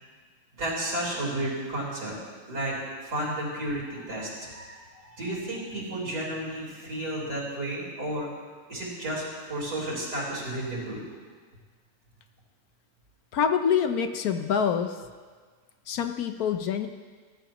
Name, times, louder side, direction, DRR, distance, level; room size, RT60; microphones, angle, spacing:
voice 1, 0.6-2.1 2.5-2.7 3.0-4.8 5.1-8.3 8.7-11.0, right 1 dB, 70° right, -6 dB, 4.9 m, -32 dB
voice 2, 13.3-15.0 15.9-16.9, left 7 dB, 65° left, 7 dB, 1.2 m, -26 dB
21.0 x 13.0 x 3.0 m, 1.5 s
omnidirectional pair, 1.8 m